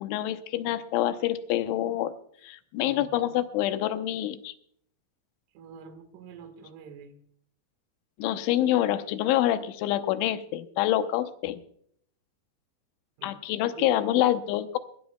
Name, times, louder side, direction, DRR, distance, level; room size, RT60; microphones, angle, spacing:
voice 1, 0.0-2.1 2.4-4.5 8.2-11.6 13.2-14.8, left 13 dB, 80° left, 10 dB, 3.0 m, -26 dB
voice 2, 2.8-3.1 5.5-7.1 13.2-13.3 13.7-14.3, right 6 dB, 75° right, 9 dB, 3.9 m, -45 dB
21.0 x 16.5 x 2.2 m, 0.63 s
omnidirectional pair, 5.9 m